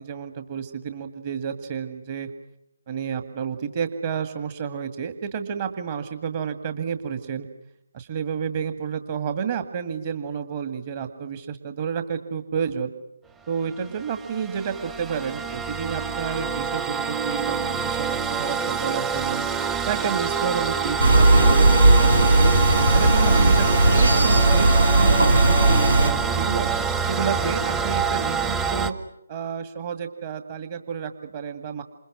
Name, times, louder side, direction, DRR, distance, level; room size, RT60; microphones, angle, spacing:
voice 1, 0.0-2.3 2.9-7.5 7.9-12.9 13.5-19.4 19.9-22.5 22.9-26.7 27.0-28.9 29.3-31.8, right 7 dB, 30° right, 8 dB, 1.9 m, -30 dB
sound 1, 13.7-28.9, right 6 dB, 10° right, 1.0 m, -26 dB
sound 2, 21.0-26.1, right 2 dB, 70° right, 1.6 m, -17 dB
28.5 x 27.5 x 6.2 m, 0.79 s
figure-of-eight pair, 145°, 0 cm